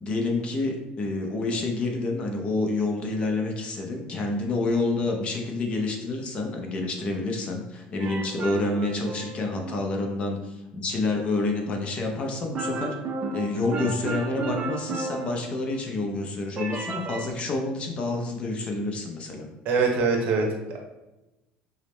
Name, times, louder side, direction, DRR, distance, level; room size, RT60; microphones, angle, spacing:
voice 1, 0.0-12.9 13.3-19.5, left 2 dB, 35° left, 2 dB, 0.6 m, -28 dB
sound 1, 8.0-9.9 12.6-15.9 16.6-17.3, right 3 dB, 35° right, 0.5 m, -33 dB
voice 2, 19.6-20.9, right 4 dB, 60° right, 2 dB, 0.8 m, -24 dB
4.8 x 2.0 x 3.1 m, 0.99 s
cardioid pair, 140°, 3 cm